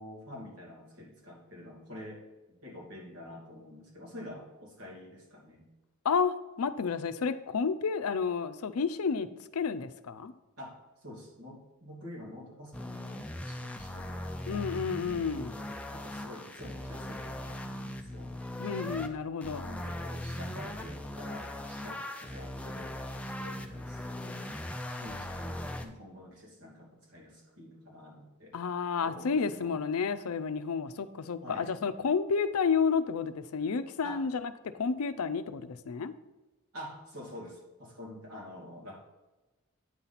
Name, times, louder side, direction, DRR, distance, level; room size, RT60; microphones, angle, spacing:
voice 1, 0.0-2.2 2.6-5.7 10.6-14.7 15.9-18.3 19.6-24.4 25.0-28.5 29.0-29.8 31.4-31.7 34.0-34.2 36.7-39.0, left 1 dB, 75° right, -2 dB, 2.4 m, -47 dB
voice 2, 6.0-10.3 14.5-15.6 18.6-19.7 28.5-34.5 34.8-36.1, left 5 dB, 80° left, 12 dB, 0.5 m, -31 dB
sound 1, 12.7-19.1 19.4-25.9, left 1 dB, 5° left, 0.4 m, -39 dB
9.0 x 4.0 x 5.8 m, 1.1 s
head